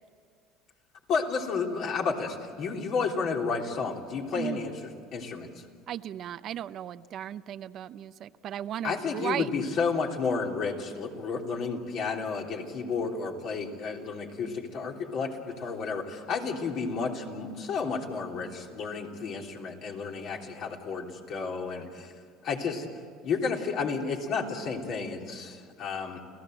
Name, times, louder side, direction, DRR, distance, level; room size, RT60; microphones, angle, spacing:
voice 1, 1.1-4.7 5.1-5.5 8.8-22.1 22.4-22.9 23.2-26.2, left 5 dB, 55° left, 1 dB, 3.5 m, -31 dB
voice 2, 5.9-9.5, right 11 dB, 50° right, 13 dB, 0.6 m, -36 dB
29.5 x 17.0 x 7.9 m, 2.2 s
supercardioid pair, 100°, 0 cm